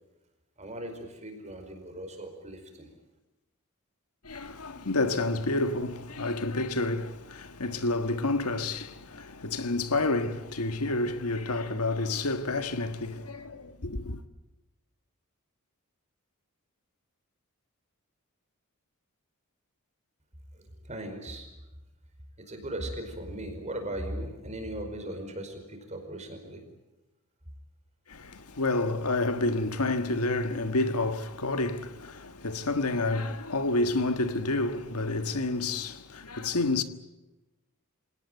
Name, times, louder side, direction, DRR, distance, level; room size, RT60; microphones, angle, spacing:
voice 1, 0.6-2.9 20.5-21.5 22.4-26.6, right 1 dB, 30° right, 5.0 m, -38 dB
voice 2, 4.2-14.2 28.1-36.8, left 2 dB, 85° left, 1.6 m, -29 dB
26.5 x 18.5 x 9.3 m
head